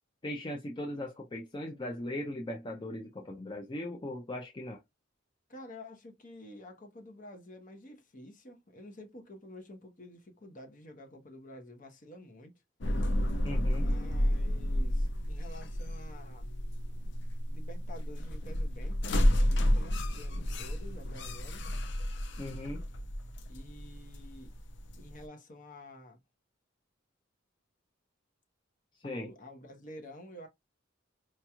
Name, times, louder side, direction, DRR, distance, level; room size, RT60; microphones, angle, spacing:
voice 1, 0.2-4.8 13.4-13.9 22.4-22.8 29.0-29.3, left 1 dB, 25° left, 0.5 m, -38 dB
voice 2, 5.5-12.5 13.7-16.5 17.5-21.6 23.5-24.5 24.9-26.2 29.0-30.5, left 1 dB, 45° left, 0.9 m, -50 dB
sound 1, 12.8-25.2, equal, 65° left, 0.6 m, -31 dB
4.5 x 3.0 x 2.3 m
head